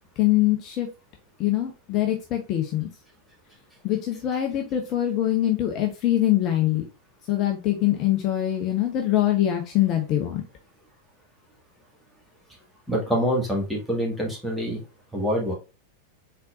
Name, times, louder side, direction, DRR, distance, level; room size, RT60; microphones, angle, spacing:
voice 1, 0.2-0.9 1.4-2.9 3.8-6.8 7.3-10.4, left 13 dB, 35° left, 3 dB, 0.8 m, -23 dB
voice 2, 12.9-14.8 15.1-15.5, equal, ahead, -2 dB, 1.8 m, -25 dB
4.3 x 4.0 x 2.5 m, 0.30 s
figure-of-eight pair, 90°, 0 cm